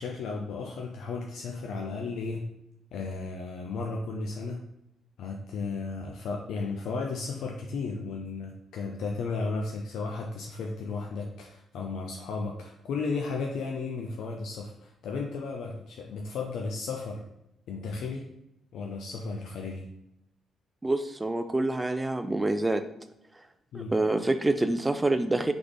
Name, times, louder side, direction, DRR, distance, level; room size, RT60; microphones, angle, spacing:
voice 1, 0.0-2.5 2.9-4.6 5.2-17.2 17.7-18.3 18.7-19.9 23.7-23.9, left 4 dB, 75° left, 1 dB, 0.5 m, -34 dB
voice 2, 20.8-22.8 23.7-25.5, right 2 dB, 15° right, 9 dB, 0.3 m, -26 dB
3.3 x 3.3 x 3.9 m, 0.85 s
cardioid pair, 90°, 0 cm